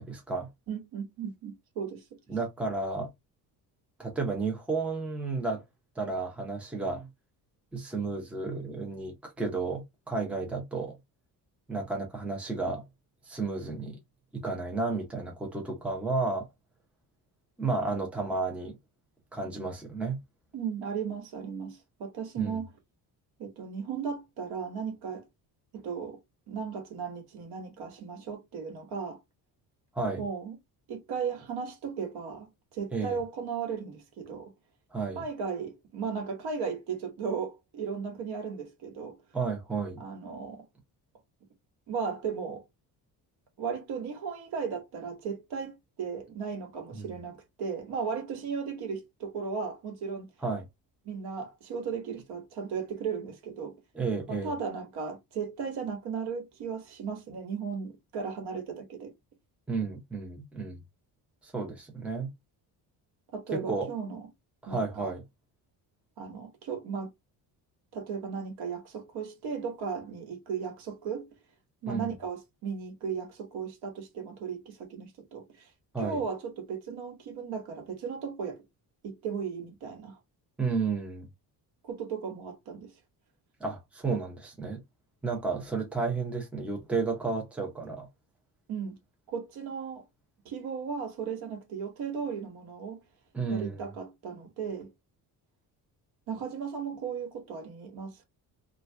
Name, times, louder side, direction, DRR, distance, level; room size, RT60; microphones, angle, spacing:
voice 1, 0.0-0.5 2.3-3.1 4.0-5.6 6.0-7.1 7.7-11.0 11.7-12.8 13.2-14.0 14.3-16.5 17.6-18.8 19.3-20.2 22.4-22.6 29.9-30.2 32.9-33.2 34.9-35.2 39.3-40.0 46.9-47.1 50.4-50.7 53.9-54.5 59.7-60.8 61.4-62.3 63.5-63.9 64.6-65.2 71.9-72.1 75.9-76.2 80.6-81.3 83.6-84.8 85.2-88.1 93.3-93.8, right 4 dB, 5° right, 0.7 m, -32 dB
voice 2, 0.7-2.0 20.5-22.7 23.4-25.3 25.7-26.2 26.5-29.2 30.2-30.6 30.9-34.5 35.1-39.2 40.0-40.7 41.9-42.6 43.6-50.3 51.0-53.8 54.3-59.1 63.3-64.2 64.7-65.1 66.2-67.1 67.9-71.3 71.8-75.7 76.0-78.6 79.0-80.2 81.8-82.9 88.7-89.0 89.3-90.0 90.4-93.0 93.5-94.9 96.3-98.2, right 6 dB, 75° right, 1.4 m, -36 dB
2.8 x 2.4 x 3.3 m
cardioid pair, 175°, 39 cm